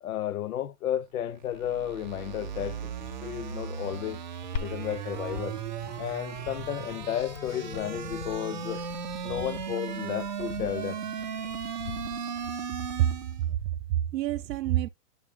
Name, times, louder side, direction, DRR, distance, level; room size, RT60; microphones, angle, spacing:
voice 1, 0.0-2.9 3.2-4.2 4.6-5.6 6.0-8.8 9.2-11.0, left 11 dB, 60° left, 0.6 m, -33 dB
sound 1, 1.2-13.5, right 6 dB, 30° right, 0.5 m, -36 dB
Glass, 4.6-12.5, left 8 dB, 90° left, 0.8 m, -42 dB
voice 2, 13.4-14.9, right 12 dB, 90° right, 0.6 m, -27 dB
8.8 x 3.2 x 3.5 m
hypercardioid pair, 180°, 48 cm